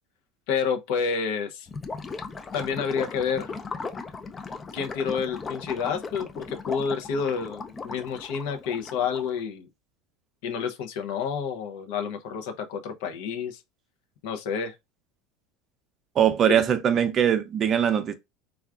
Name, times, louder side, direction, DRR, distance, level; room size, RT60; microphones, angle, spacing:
voice 1, 0.5-1.7 2.5-3.5 4.7-9.7 10.4-13.6 14.2-14.7 16.5-16.6, left 6 dB, 75° left, 0.6 m, -29 dB
Gurgling / Liquid, 1.7-9.4, left 4 dB, 25° left, 0.4 m, -37 dB
voice 2, 16.2-18.1, right 9 dB, 40° right, 0.5 m, -21 dB
3.4 x 2.3 x 2.4 m
supercardioid pair, 110°, 0 cm